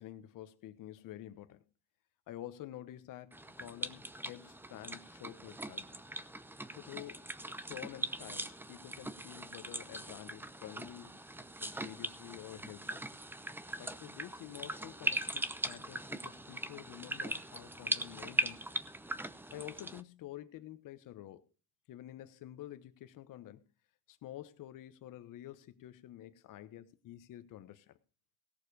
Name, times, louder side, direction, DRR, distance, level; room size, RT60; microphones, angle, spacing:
voice 1, 0.0-1.6 2.3-6.0 6.7-7.3 7.7-11.2 11.6-13.0 13.8-18.7 19.5-21.4 21.9-23.6 24.1-28.0, left 13 dB, 50° left, 1.2 m, -49 dB
sound 1, 3.3-20.0, right 1 dB, 5° right, 0.7 m, -40 dB
17.0 x 7.0 x 5.0 m
supercardioid pair, 100°, 40 cm